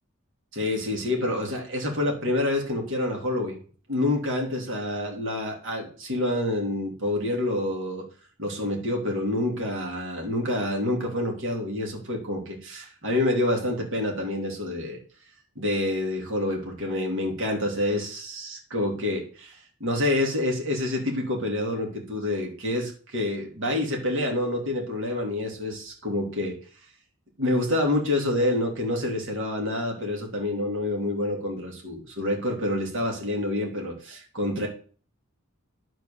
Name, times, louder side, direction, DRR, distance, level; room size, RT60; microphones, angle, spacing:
voice 1, 0.5-3.6 3.9-8.1 8.4-15.0 15.5-19.5 19.8-26.6 27.4-34.7, left 1 dB, 60° right, 1 dB, 3.1 m, -27 dB
10.5 x 4.7 x 7.0 m, 0.42 s
head